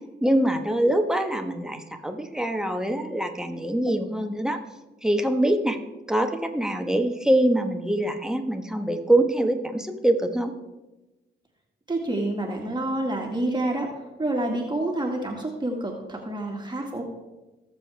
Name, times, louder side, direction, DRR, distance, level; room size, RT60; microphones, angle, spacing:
voice 1, 0.2-4.6 5.0-5.8 6.1-10.5, right 1 dB, 5° right, 5 dB, 1.3 m, -24 dB
voice 2, 11.9-13.9 14.2-17.0, right 1 dB, 25° right, 0 dB, 1.9 m, -28 dB
18.5 x 7.1 x 3.4 m, 1.1 s
cardioid pair, 80°, 19 cm